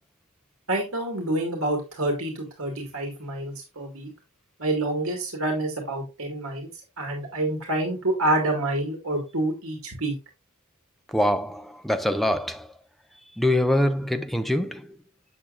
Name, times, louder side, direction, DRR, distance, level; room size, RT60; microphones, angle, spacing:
voice 1, 0.7-4.1 4.6-6.7 7.0-10.1, right 1 dB, 65° right, 2.2 m, -27 dB
voice 2, 11.1-12.7 13.4-14.9, left 1 dB, ahead, 0.6 m, -24 dB
8.2 x 7.3 x 2.5 m
head